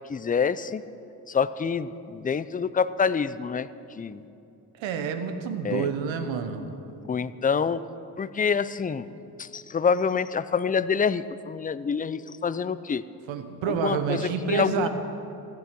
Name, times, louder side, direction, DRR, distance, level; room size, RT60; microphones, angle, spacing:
voice 1, 0.1-0.8 1.3-3.7 4.0-4.3 5.6-5.9 7.1-7.8 8.2-9.1 9.4-13.0 13.7-14.9, left 6 dB, 20° left, 15 dB, 0.5 m, -26 dB
voice 2, 4.8-6.7 13.3-14.9, right 7 dB, 75° right, 8 dB, 1.2 m, -28 dB
15.0 x 10.0 x 6.1 m, 2.8 s
hypercardioid pair, 45°, 46 cm